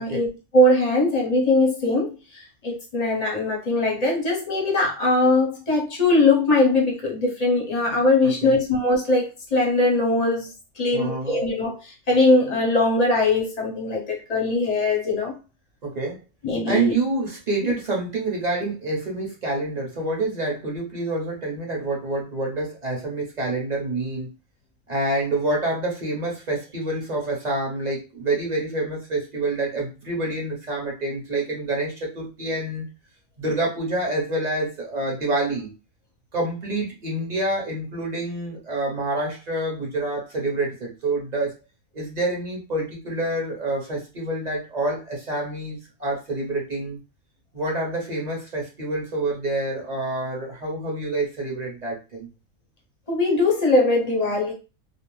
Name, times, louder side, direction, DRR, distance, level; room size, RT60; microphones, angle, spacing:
voice 1, 0.0-15.3 16.4-16.9 53.1-54.5, left 2 dB, 40° left, 0.6 m, -21 dB
voice 2, 8.2-8.6 10.9-11.4 15.8-16.2 16.6-24.3 24.9-32.9 33.4-35.7 36.3-41.5 41.9-47.0 47.5-52.3, right 2 dB, 40° right, 0.8 m, -27 dB
2.5 x 2.0 x 3.0 m
omnidirectional pair, 1.4 m